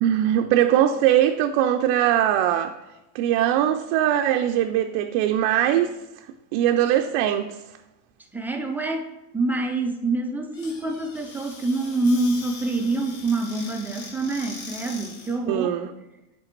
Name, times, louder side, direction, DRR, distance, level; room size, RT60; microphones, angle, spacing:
voice 1, 0.0-2.7 3.1-5.9 6.5-7.6 15.5-15.9, right 11 dB, 60° right, 0.5 m, -21 dB
voice 2, 8.3-9.1 9.3-15.8, right 2 dB, 5° right, 0.3 m, -26 dB
Squeak / Cupboard open or close, 10.5-15.4, left 3 dB, 65° left, 2.3 m, -41 dB
7.9 x 3.4 x 4.4 m
supercardioid pair, 120°, 46 cm